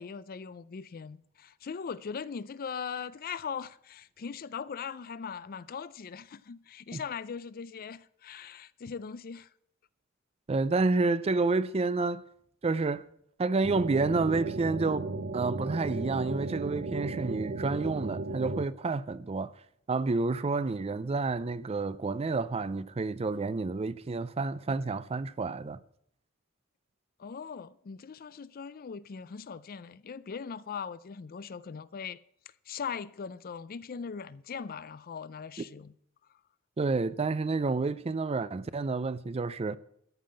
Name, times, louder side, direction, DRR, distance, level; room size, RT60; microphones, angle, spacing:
voice 1, 0.0-9.5 27.2-32.2 32.7-36.0, left 6 dB, 45° left, 0.4 m, -40 dB
voice 2, 10.5-12.2 12.6-13.0 13.4-19.5 19.9-25.8 36.8-39.8, right 3 dB, 30° right, 0.4 m, -29 dB
sound 1, 13.6-18.6, right 2 dB, 55° right, 0.8 m, -35 dB
14.0 x 5.7 x 8.7 m
head